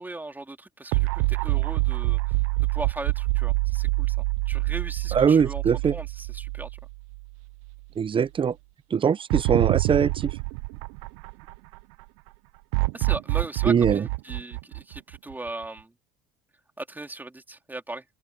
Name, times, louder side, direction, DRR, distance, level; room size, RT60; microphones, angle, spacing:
voice 1, 0.0-2.2 2.7-4.1 4.5-5.6 5.9-6.7 12.9-15.9 16.8-18.0, right 2 dB, 10° right, 3.7 m, -38 dB
sound 1, 0.9-7.3 7.6-7.7 9.3-11.8 12.7-15.5, right 25 dB, 85° right, 0.5 m, -26 dB
voice 2, 5.1-5.9 8.0-8.5 8.9-10.3 13.7-14.1, right 7 dB, 30° right, 0.8 m, -22 dB
supercardioid pair, 95°, 17 cm